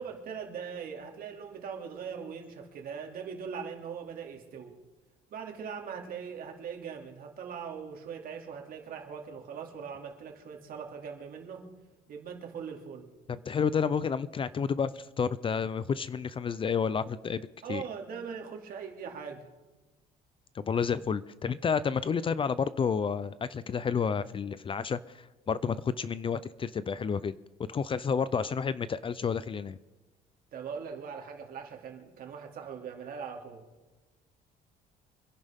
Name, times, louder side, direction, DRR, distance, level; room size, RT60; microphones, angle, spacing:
voice 1, 0.0-4.8 5.3-11.7 12.1-13.1 17.6-19.5 28.4-28.5 30.5-33.7, right 6 dB, 60° right, 2 dB, 2.6 m, -41 dB
voice 2, 13.3-17.4 17.7-17.8 20.5-27.3 27.7-29.8, left 6 dB, 30° left, 16 dB, 0.5 m, -30 dB
26.0 x 11.0 x 3.6 m, 1.2 s
cardioid pair, 110°, 17 cm